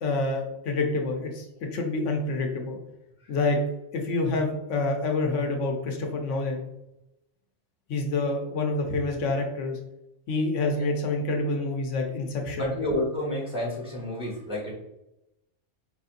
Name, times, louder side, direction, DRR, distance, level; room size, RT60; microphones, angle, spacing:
voice 1, 0.0-1.5 1.7-2.8 3.3-3.6 3.9-6.6 7.9-9.8 10.3-12.7, left 3 dB, 75° left, 2 dB, 0.9 m, -27 dB
voice 2, 12.6-14.7, left 1 dB, 5° right, -4 dB, 1.0 m, -30 dB
4.8 x 2.6 x 2.5 m, 0.89 s
omnidirectional pair, 1.3 m